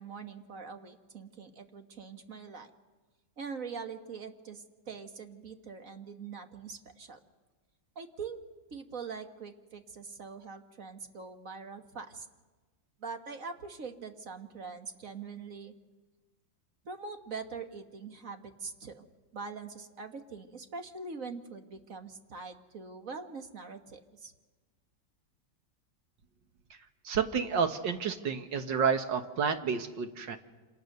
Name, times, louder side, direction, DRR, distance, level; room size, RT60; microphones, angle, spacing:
voice 1, 0.0-2.7 3.4-7.2 8.0-8.4 8.7-12.3 13.0-15.7 16.9-19.1 19.3-24.3, right 5 dB, 45° right, 6 dB, 1.8 m, -43 dB
voice 2, 27.1-30.4, right 6 dB, 70° right, 7 dB, 2.0 m, -30 dB
28.0 x 27.0 x 6.7 m, 1.3 s
omnidirectional pair, 2.1 m